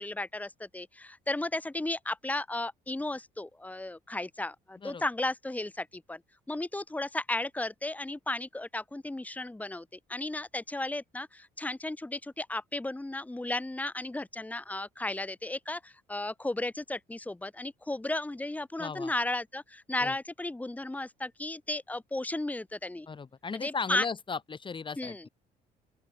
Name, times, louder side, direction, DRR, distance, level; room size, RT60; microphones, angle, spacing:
voice 1, 0.0-6.2 6.5-23.1 23.5-24.0 25.0-25.3, left 2 dB, 10° left, 3.0 m, -34 dB
voice 2, 18.8-19.1 20.0-20.1 23.1-25.3, left 5 dB, 30° left, 3.2 m, -36 dB
open air
cardioid pair, 110°, 17 cm